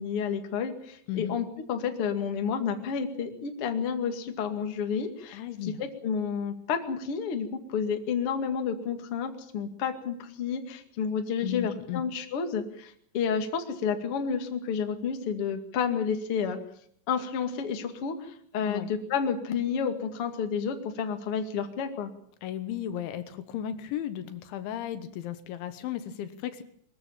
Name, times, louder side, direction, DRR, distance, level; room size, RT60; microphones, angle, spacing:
voice 1, 0.0-16.6 17.1-22.1, left 6 dB, 45° left, 5 dB, 2.1 m, -30 dB
voice 2, 5.3-5.8 11.4-12.0 18.7-18.9 22.4-26.6, left 11 dB, 75° left, 11 dB, 3.4 m, -35 dB
22.5 x 14.5 x 8.8 m, 0.65 s
omnidirectional pair, 5.6 m